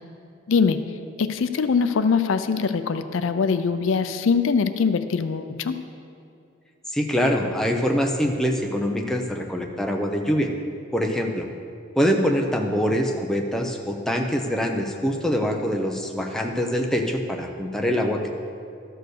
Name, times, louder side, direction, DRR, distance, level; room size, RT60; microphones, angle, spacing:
voice 1, 0.5-0.8 1.2-5.8, left 5 dB, 70° left, 10 dB, 0.4 m, -22 dB
voice 2, 6.9-10.5 10.9-11.5 12.0-18.3, equal, ahead, 1 dB, 0.6 m, -24 dB
13.0 x 4.6 x 6.5 m, 2.5 s
head